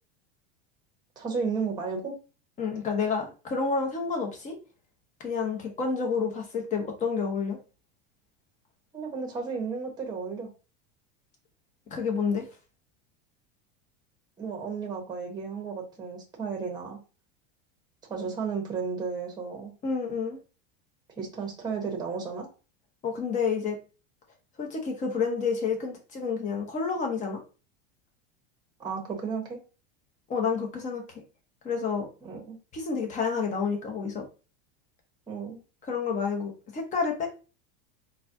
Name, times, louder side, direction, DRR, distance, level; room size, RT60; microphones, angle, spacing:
voice 1, 1.2-2.1 8.9-10.5 14.4-17.0 18.1-19.7 21.2-22.4 28.8-29.6 32.2-32.6 35.3-35.6, right 5 dB, 15° right, 1 dB, 1.0 m, -33 dB
voice 2, 2.6-4.6 5.2-7.6 11.9-12.5 19.8-20.4 23.0-23.8 24.6-27.4 30.3-31.0 31.6-32.1 32.7-34.2 35.9-37.3, left 5 dB, 25° left, 2 dB, 0.9 m, -29 dB
4.0 x 2.3 x 2.7 m, 0.34 s
supercardioid pair, 145°, 30 cm